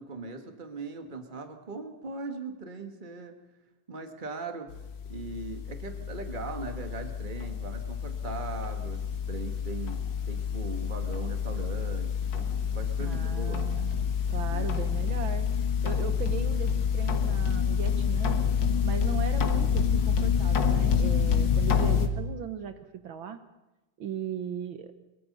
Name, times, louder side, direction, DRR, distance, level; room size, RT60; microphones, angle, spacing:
voice 1, 0.0-3.4 3.9-4.7 5.1-13.7 14.4-14.8 19.3-19.4, right 3 dB, 25° right, 5 dB, 1.7 m, -39 dB
sound 1, 4.7-22.1, left 7 dB, 60° left, 2.0 m, -28 dB
voice 2, 13.0-14.0 14.3-18.4 18.8-22.8 23.0-23.4 24.0-24.9, right 8 dB, 70° right, 9 dB, 1.8 m, -37 dB
22.0 x 22.0 x 5.5 m, 1.0 s
omnidirectional pair, 2.4 m